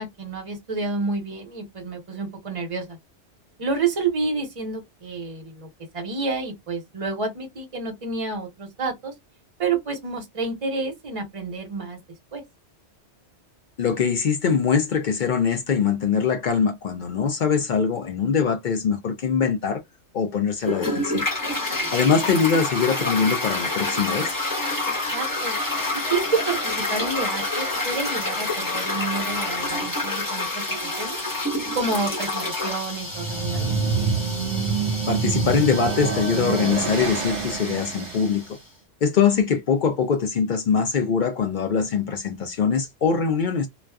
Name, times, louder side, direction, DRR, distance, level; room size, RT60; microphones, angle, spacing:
voice 1, 0.0-3.0 3.6-5.7 5.9-9.1 9.6-12.0 12.3-12.4 21.6-21.9 25.1-25.6 25.9-31.2 31.7-33.7, right 4 dB, 30° right, 0.9 m, -29 dB
voice 2, 13.8-19.8 20.1-21.3 21.6-24.4 35.1-38.4 39.0-43.7, left 6 dB, 60° left, 0.5 m, -23 dB
Toilet flush, 20.6-38.6, left 2 dB, 20° left, 0.9 m, -28 dB
sound 1, 33.0-38.4, right 5 dB, 75° right, 1.1 m, -26 dB
2.4 x 2.3 x 2.2 m
omnidirectional pair, 1.2 m